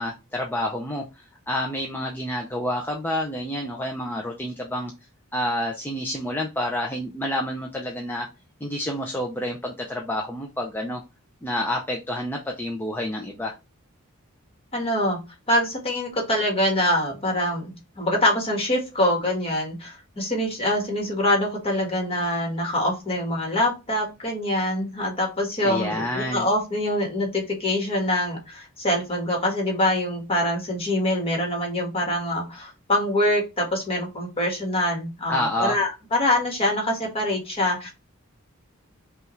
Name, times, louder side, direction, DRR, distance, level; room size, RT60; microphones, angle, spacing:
voice 1, 0.0-4.9 5.3-8.3 8.6-11.0 11.4-13.5 25.6-26.5 35.3-35.8, left 1 dB, 10° left, 0 dB, 0.5 m, -28 dB
voice 2, 14.7-15.2 15.5-37.9, left 1 dB, 25° left, 0 dB, 1.6 m, -24 dB
5.6 x 2.4 x 3.1 m, 0.27 s
head